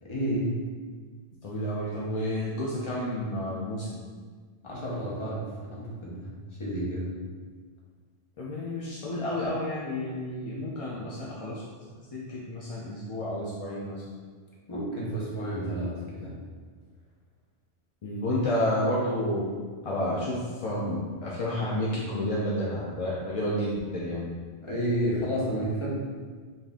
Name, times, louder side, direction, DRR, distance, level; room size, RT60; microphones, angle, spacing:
voice 1, 0.0-0.5 4.6-7.2 14.7-16.3 24.6-25.9, right 1 dB, 30° left, -6 dB, 0.9 m, -31 dB
voice 2, 1.4-4.0 8.4-11.6 12.1-14.0 18.0-19.5 19.8-24.2, left 1 dB, 45° left, -6 dB, 0.4 m, -30 dB
4.1 x 2.6 x 3.5 m, 1.5 s
omnidirectional pair, 1.1 m